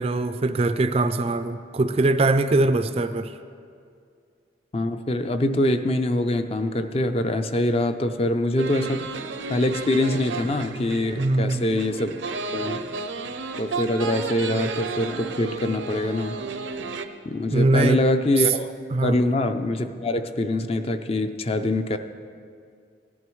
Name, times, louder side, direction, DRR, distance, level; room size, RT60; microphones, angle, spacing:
voice 1, 0.0-3.4 11.2-11.6 17.5-18.0 18.9-19.2, right 2 dB, 35° right, 10 dB, 0.3 m, -22 dB
voice 2, 4.7-9.1 9.5-12.1 12.5-12.8 13.6-16.4 17.2-18.7 19.0-22.0, left 1 dB, 30° left, 8 dB, 0.4 m, -24 dB
sound 1, 8.6-17.1, right 4 dB, 85° right, 0.6 m, -33 dB
17.5 x 11.0 x 3.1 m, 2.3 s
head